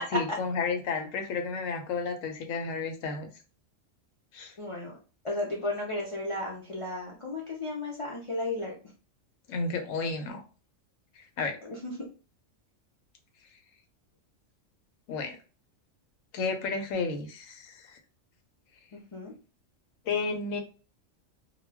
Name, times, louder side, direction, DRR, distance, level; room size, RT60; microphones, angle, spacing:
voice 1, 0.0-3.3 4.3-4.5 9.5-10.4 11.2-11.6 15.1-15.4 16.3-18.0 20.1-20.6, left 4 dB, 85° left, 6 dB, 1.0 m, -32 dB
voice 2, 4.6-5.0 5.2-8.7 11.6-11.9 18.9-19.3, left 2 dB, 45° left, -3 dB, 0.4 m, -34 dB
2.3 x 2.2 x 3.3 m, 0.35 s
omnidirectional pair, 1.3 m